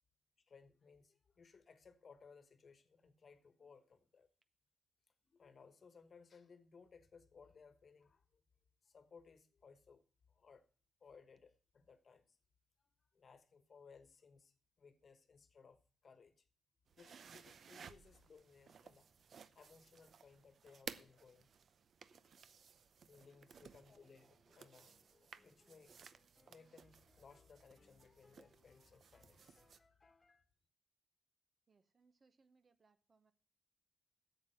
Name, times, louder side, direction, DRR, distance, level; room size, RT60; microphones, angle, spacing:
voice 1, 0.5-4.3 5.3-8.4 8.8-10.0 10.3-10.6 11.0-12.4 13.1-16.4 17.0-19.1 19.5-21.5 23.1-25.0 25.4-26.0 26.4-29.6, left 5 dB, 50° left, 1.2 m, -63 dB
sound 1, 16.9-29.8, right 6 dB, 60° right, 0.6 m, -58 dB
sound 2, 24.5-30.4, left 3 dB, 30° left, 1.3 m, -73 dB
voice 2, 31.7-33.3, right 4 dB, 40° right, 0.9 m, -74 dB
8.8 x 7.6 x 7.6 m
cardioid pair, 105°, 0 cm